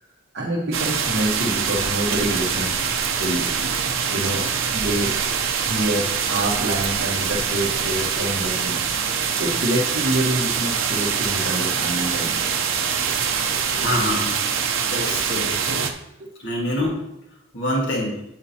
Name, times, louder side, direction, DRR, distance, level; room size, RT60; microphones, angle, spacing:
voice 1, 0.3-2.9 3.1-3.5 4.1-5.1 5.6-12.5 13.0-13.1 13.7-13.8, right 1 dB, 55° right, -3 dB, 1.3 m, -27 dB
sound 1, 0.7-15.9, right 6 dB, 75° right, 0.8 m, -24 dB
voice 2, 13.7-14.4 14.9-15.5 16.4-17.0 17.5-18.2, left 1 dB, 60° left, -3 dB, 2.0 m, -25 dB
9.3 x 8.6 x 2.9 m, 0.84 s
head